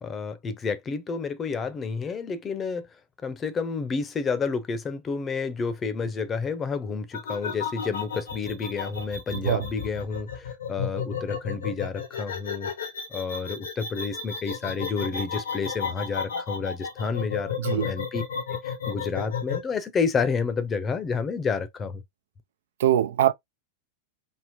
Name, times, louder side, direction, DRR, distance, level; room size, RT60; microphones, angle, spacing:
voice 1, 0.0-2.9 3.2-12.7 13.1-18.2 18.5-22.0, left 5 dB, 25° left, 0.6 m, -30 dB
sound 1, 7.1-19.7, left 6 dB, 85° left, 0.9 m, -33 dB
voice 2, 9.3-9.7 17.6-17.9 22.8-23.3, right 11 dB, 75° right, 0.3 m, -22 dB
3.6 x 2.0 x 2.9 m
hypercardioid pair, 120°, 0 cm